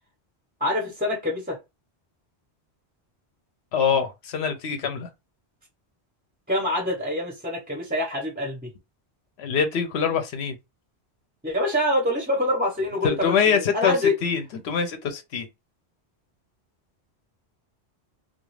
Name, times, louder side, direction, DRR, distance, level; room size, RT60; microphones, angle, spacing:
voice 1, 0.6-1.6 6.5-8.7 11.4-14.1, left 1 dB, 10° right, 0.5 m, -25 dB
voice 2, 3.7-5.1 9.4-10.6 13.0-13.9 14.2-15.5, left 6 dB, 75° left, 0.9 m, -24 dB
2.3 x 2.2 x 3.1 m
omnidirectional pair, 1.1 m